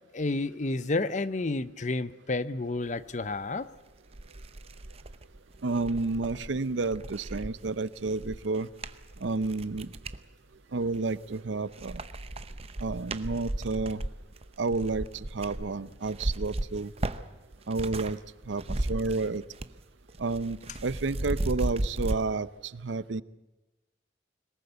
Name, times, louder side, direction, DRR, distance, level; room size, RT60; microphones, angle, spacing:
voice 1, 0.1-3.7, left 2 dB, 40° left, 15 dB, 0.7 m, -30 dB
sound 1, 3.6-3.7 4.1-10.2 10.8-11.4 11.7-18.2 18.4-19.8 20.1-22.2, right 1 dB, 30° right, 0.8 m, -36 dB
voice 2, 5.6-8.7 9.2-9.9 10.7-12.0 12.8-14.0 14.6-16.9 17.7-18.2 18.5-18.6 18.9-19.4 20.2-23.2, right 3 dB, 80° right, 17 dB, 0.7 m, -30 dB
22.0 x 20.0 x 8.1 m, 1.1 s
head